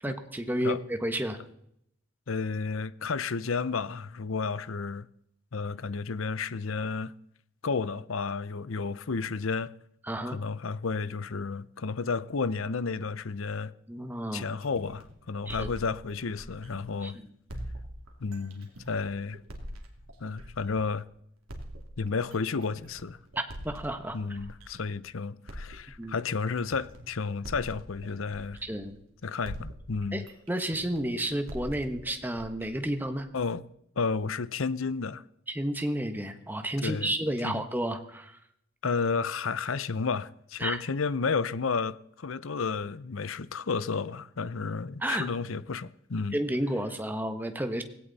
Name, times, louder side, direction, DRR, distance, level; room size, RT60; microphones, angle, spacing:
voice 1, 0.0-1.4 10.0-10.4 13.9-14.4 15.5-15.7 17.0-17.3 23.6-24.4 26.0-26.2 28.6-29.0 30.1-33.3 35.5-38.4 40.6-40.8 45.0-45.3 46.3-47.8, right 1 dB, 10° right, 1.3 m, -31 dB
voice 2, 2.3-5.1 5.5-7.1 7.6-9.7 10.3-13.7 14.3-17.2 18.2-19.4 20.2-21.0 22.0-23.2 24.1-28.6 29.2-30.3 33.3-33.6 34.0-35.2 36.8-37.1 37.4-37.6 38.8-46.4, left 4 dB, 75° left, 0.7 m, -32 dB
sound 1, 14.6-17.0 17.5-21.0 21.5-25.0 25.5-29.1 29.4-33.5, equal, 85° right, 2.8 m, -44 dB
17.5 x 17.0 x 4.2 m
head